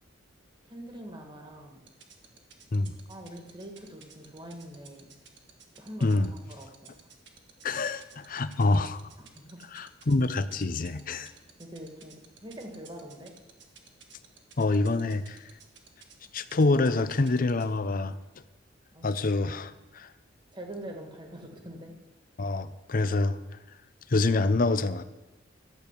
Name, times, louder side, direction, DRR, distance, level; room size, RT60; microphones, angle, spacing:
voice 1, 0.7-1.8 3.1-5.1 5.7-6.9 9.2-9.6 10.9-11.3 11.6-13.3 18.9-19.2 20.5-22.0, right 1 dB, 25° right, 3 dB, 1.8 m, -44 dB
sound 1, 1.9-17.8, right 8 dB, 65° right, 1.7 m, -52 dB
voice 2, 7.6-9.0 9.7-11.3 14.6-15.4 16.3-18.1 19.0-20.1 22.4-23.4 24.1-25.0, left 2 dB, 45° left, 14 dB, 0.6 m, -26 dB
13.0 x 6.9 x 8.3 m, 1.1 s
head